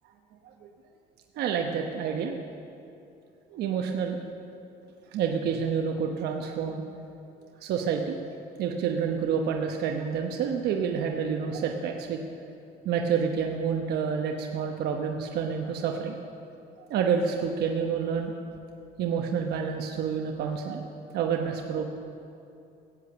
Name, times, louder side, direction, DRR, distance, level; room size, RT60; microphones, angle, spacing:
voice 1, 1.4-2.4 3.5-4.2 5.1-6.8 7.6-8.2 8.6-12.2 12.8-16.1 16.9-18.3 19.0-20.9 21.1-21.9, right 6 dB, 75° right, 2 dB, 1.0 m, -28 dB
16.0 x 8.5 x 7.0 m, 2.7 s
cardioid pair, 110°, 17 cm